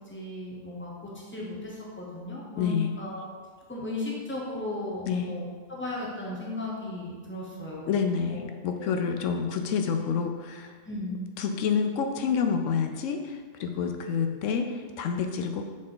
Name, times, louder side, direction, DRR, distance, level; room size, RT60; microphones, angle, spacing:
voice 1, 0.0-3.2 3.7-7.8 8.3-8.4 8.8-9.0 10.8-11.3, left 2 dB, 10° left, -4 dB, 1.1 m, -36 dB
voice 2, 2.6-2.9 5.1-5.4 7.9-10.7 11.4-15.6, left 6 dB, 90° left, 5 dB, 1.0 m, -28 dB
6.4 x 4.3 x 3.9 m, 1.5 s
omnidirectional pair, 1.3 m